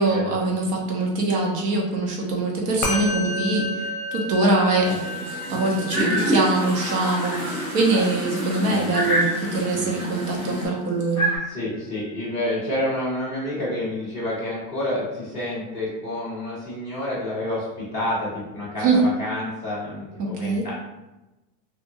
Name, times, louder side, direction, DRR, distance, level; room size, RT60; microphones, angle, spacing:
voice 1, 0.0-3.8 4.1-5.1 5.5-11.2 18.8-19.0 20.2-20.7, right 2 dB, 80° right, -1 dB, 0.9 m, -23 dB
Musical instrument, 2.8-12.4, left 1 dB, 45° left, 0.6 m, -34 dB
sound 1, 4.8-10.7, equal, 35° right, 1.3 m, -30 dB
sound 2, 5.9-8.0 8.5-8.6 8.9-9.8 11.2-11.4, right 1 dB, 10° left, 1.2 m, -27 dB
voice 2, 11.5-20.7, left 1 dB, 10° right, -11 dB, 0.3 m, -29 dB
2.6 x 2.4 x 2.6 m, 1.0 s
supercardioid pair, 165°, 47 cm